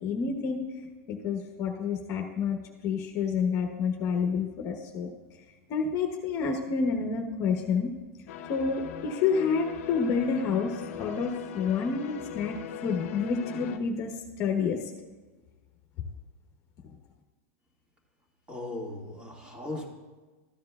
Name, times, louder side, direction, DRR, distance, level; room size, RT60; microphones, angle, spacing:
voice 1, 0.0-0.6 1.1-2.6 2.8-5.1 5.7-7.9 8.5-14.8, left 5 dB, 40° left, 3 dB, 1.0 m, -29 dB
sound 1, 8.3-13.8, left 9 dB, 70° left, 0.8 m, -40 dB
voice 2, 18.5-19.9, left 2 dB, 15° right, -1 dB, 2.0 m, -37 dB
13.5 x 9.4 x 2.4 m, 1.3 s
supercardioid pair, 135°, 8 cm